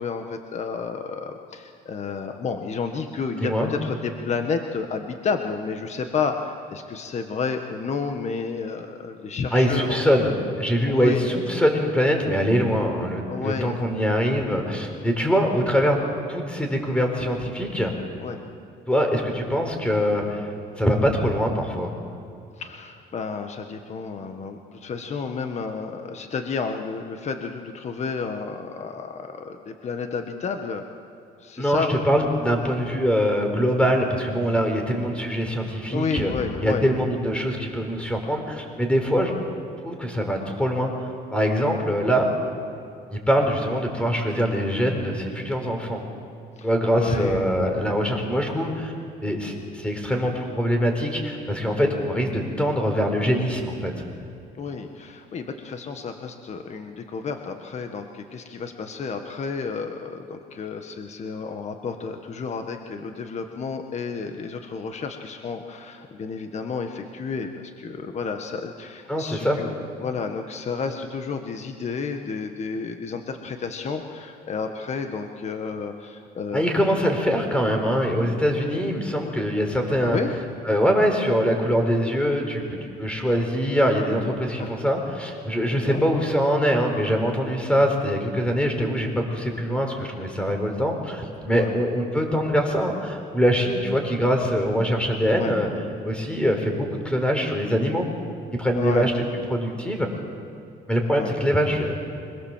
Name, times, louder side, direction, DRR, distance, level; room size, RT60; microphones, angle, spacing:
voice 1, 0.0-10.0 10.9-11.2 13.3-13.7 18.2-18.4 22.6-30.8 31.4-31.9 35.9-36.8 46.6-46.7 46.9-47.5 54.5-69.7 70.0-76.9 80.0-80.3 84.4-84.7 85.7-86.1 91.5-91.8 95.4-95.6 98.7-99.1 101.2-101.3, left 5 dB, 40° left, 5 dB, 1.6 m, -31 dB
voice 2, 3.4-3.7 9.5-16.0 16.3-17.9 18.9-20.5 20.8-21.9 31.6-36.3 36.6-39.3 39.8-42.3 43.1-46.0 46.6-48.9 49.2-53.9 69.1-69.6 76.5-80.2 80.7-95.7 96.0-98.1 98.6-99.1 99.5-100.1 100.9-102.1, equal, 5° left, 3 dB, 4.5 m, -23 dB
25.0 x 21.5 x 7.5 m, 2.6 s
cardioid pair, 110°, 17 cm